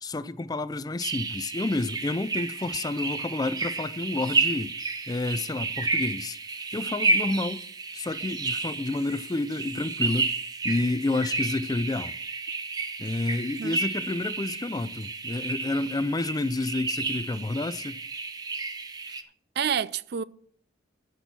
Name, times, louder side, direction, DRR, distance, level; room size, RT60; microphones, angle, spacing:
voice 1, 0.0-4.8 5.1-6.4 6.7-7.6 7.9-10.3 10.6-12.1 13.0-18.0, left 2 dB, 20° left, 0.4 m, -29 dB
sound 1, 1.0-19.2, right 3 dB, 20° right, 0.7 m, -31 dB
voice 2, 19.6-20.2, right 8 dB, 55° right, 0.4 m, -28 dB
13.5 x 6.2 x 6.0 m
head